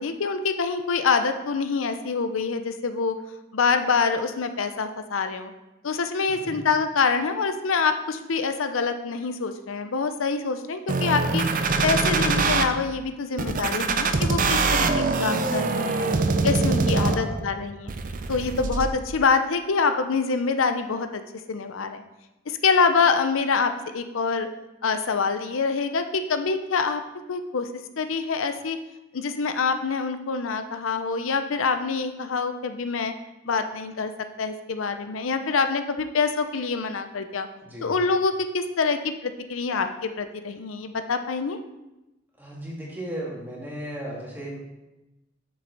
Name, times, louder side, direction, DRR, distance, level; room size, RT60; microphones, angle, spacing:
voice 1, 0.0-3.2 3.5-5.5 5.8-11.5 11.8-16.1 16.4-17.9 18.3-21.2 21.5-22.0 22.5-24.5 24.8-27.0 27.3-27.7 28.0-28.8 29.1-33.1 33.5-34.1 34.4-37.5 37.8-41.6, left 5 dB, 85° left, 8 dB, 0.6 m, -25 dB
sound 1, 10.9-12.6 13.4-17.4 17.9-18.9, right 3 dB, 40° right, 0.5 m, -23 dB
voice 2, 17.0-17.5 37.6-37.9 42.4-44.5, equal, 10° right, -5 dB, 2.0 m, -35 dB
7.8 x 6.5 x 3.9 m, 0.99 s
head